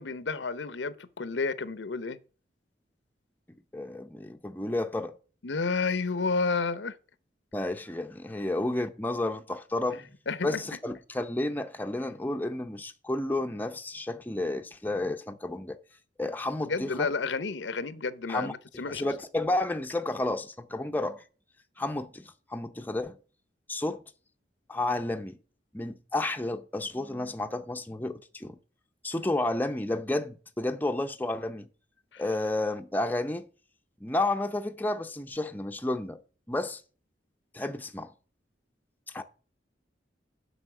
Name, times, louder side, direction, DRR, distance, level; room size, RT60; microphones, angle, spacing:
voice 1, 0.0-2.2 5.4-6.9 10.3-10.6 16.7-19.1 32.1-32.2, left 4 dB, 80° left, 0.8 m, -31 dB
voice 2, 3.7-5.1 7.5-10.0 10.4-15.8 16.2-17.1 18.3-18.5 18.9-21.2 21.8-23.2 23.7-24.0 24.7-25.4 25.7-28.6 29.0-31.7 32.2-33.5 34.0-36.2 36.5-36.8 37.5-38.1 39.1-39.2, left 2 dB, 10° left, 0.6 m, -31 dB
8.1 x 5.6 x 7.4 m
head